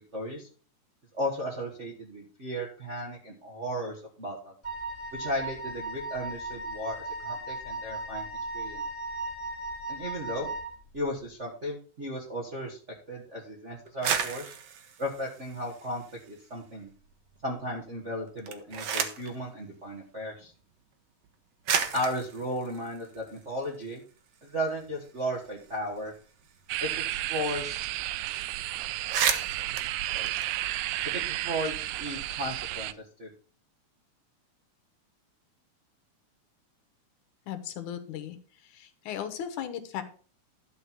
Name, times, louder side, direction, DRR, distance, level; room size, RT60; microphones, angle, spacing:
voice 1, 0.1-0.5 1.1-4.5 5.1-8.2 8.5-8.8 9.9-10.5 10.9-12.8 13.1-14.5 15.0-16.9 17.4-20.5 21.9-24.0 24.4-26.1 26.8-27.9 29.7-29.8 30.1-30.3 31.0-32.9 33.2-33.3, equal, 40° right, -2 dB, 1.1 m, -35 dB
Wind instrument woodwind instrument, 4.6-10.7, right 2 dB, 10° left, 3.4 m, -37 dB
sound 1, 13.9-16.4 16.8-17.5 18.3-19.4 20.4-20.5 21.2-21.3 21.6-24.0 24.3-24.4 24.7-27.3 27.6-27.7 28.0-28.2 28.6-28.7 28.9-31.1, right 8 dB, 60° right, 1.8 m, -33 dB
sound 2, 26.7-32.9, right 15 dB, 80° right, 2.0 m, -32 dB
voice 2, 37.5-38.4 38.7-40.0, left 9 dB, 80° left, 9 dB, 2.5 m, -36 dB
12.0 x 4.6 x 5.8 m, 0.41 s
omnidirectional pair, 3.5 m